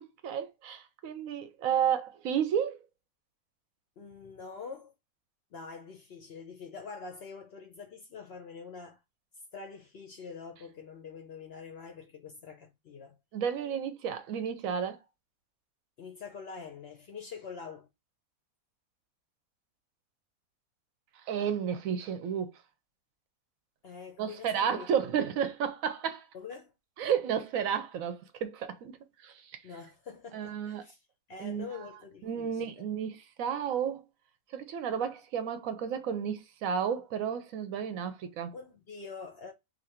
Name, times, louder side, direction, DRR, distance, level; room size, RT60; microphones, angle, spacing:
voice 1, 0.2-2.8 13.3-15.0 21.3-22.5 24.2-26.3 27.0-28.9 29.2-29.6 30.3-30.8 31.4-31.7 32.2-34.0 34.5-38.5, right 8 dB, 75° right, 1.0 m, -32 dB
voice 2, 4.0-4.9 5.5-9.0 9.5-13.2 16.0-17.9 23.8-25.2 26.3-26.7 29.6-32.8 38.5-39.5, left 5 dB, 60° left, 0.7 m, -45 dB
2.8 x 2.6 x 4.2 m
omnidirectional pair, 1.5 m